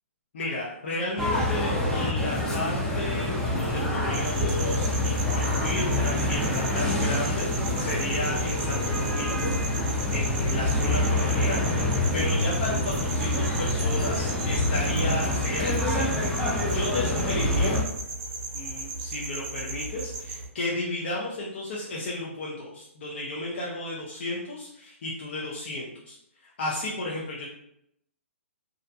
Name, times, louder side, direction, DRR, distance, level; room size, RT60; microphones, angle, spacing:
voice 1, 0.3-9.8 10.1-16.2 16.4-17.8 18.5-26.2 26.4-27.5, left 2 dB, 55° left, -5 dB, 0.5 m, -33 dB
sound 1, 1.2-17.8, left 1 dB, 5° left, 0.4 m, -26 dB
sound 2, 4.1-20.5, right 2 dB, 35° right, 0.6 m, -36 dB
2.4 x 2.1 x 2.6 m, 0.78 s
hypercardioid pair, 135°, 7 cm